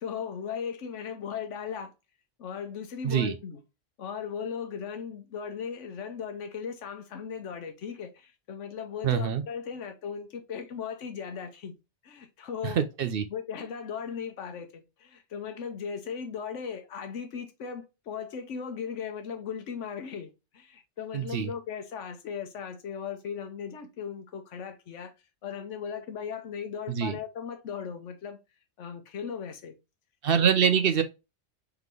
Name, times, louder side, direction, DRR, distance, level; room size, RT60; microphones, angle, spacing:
voice 1, 0.0-1.9 2.4-3.6 4.0-11.7 12.0-12.8 13.3-25.1 25.4-28.4 28.8-29.8 30.6-30.9, left 7 dB, 85° left, 1.2 m, -37 dB
voice 2, 3.0-3.4 9.0-9.4 12.6-13.3 21.1-21.5 26.9-27.2 30.2-31.0, right 8 dB, 60° right, 0.7 m, -25 dB
3.9 x 3.5 x 3.2 m
omnidirectional pair, 1.2 m